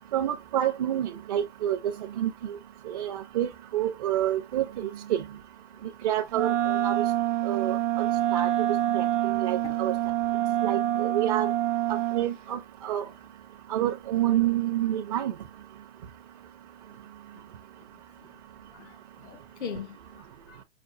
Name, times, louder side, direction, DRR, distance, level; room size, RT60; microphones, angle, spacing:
voice 1, 0.1-1.8 2.2-2.3 2.9-5.2 6.0-6.9 7.4-8.1 8.3-8.5 8.9-9.9 10.6-11.5 12.1-13.0 13.7-15.3, right 12 dB, 35° right, 0.5 m, -28 dB
Wind instrument woodwind instrument, 6.3-12.3, right 13 dB, 90° right, 0.8 m, -26 dB
voice 2, 18.7-20.6, left 6 dB, 70° left, 1.0 m, -42 dB
5.8 x 2.4 x 2.4 m
hypercardioid pair, 155°, 36 cm